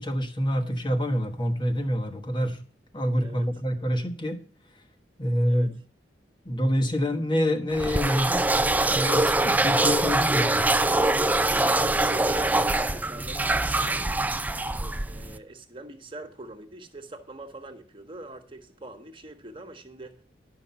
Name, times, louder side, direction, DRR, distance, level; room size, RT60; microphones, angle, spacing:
voice 1, 0.0-2.6 2.9-4.4 5.2-5.7 6.4-8.5 8.9-10.5, equal, 25° left, 5 dB, 1.3 m, -26 dB
sound 1, 7.7-15.4, right 2 dB, 10° right, 0.4 m, -24 dB
voice 2, 11.3-14.1 14.8-20.2, right 2 dB, 30° right, 5 dB, 1.4 m, -43 dB
11.5 x 5.9 x 6.9 m, 0.41 s
head